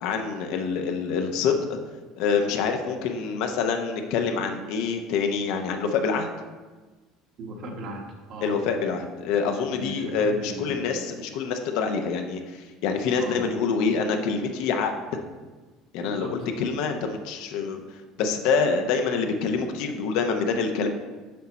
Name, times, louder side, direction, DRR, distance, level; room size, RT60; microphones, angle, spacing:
voice 1, 0.0-1.8 2.2-6.3 8.4-15.1 15.9-17.8 18.2-20.9, left 5 dB, 75° left, 5 dB, 0.7 m, -26 dB
voice 2, 7.4-8.6 9.7-11.0 13.1-13.6 16.0-16.3, right 1 dB, 60° right, 1 dB, 1.1 m, -38 dB
6.5 x 4.1 x 4.1 m, 1.3 s
supercardioid pair, 110°, 0 cm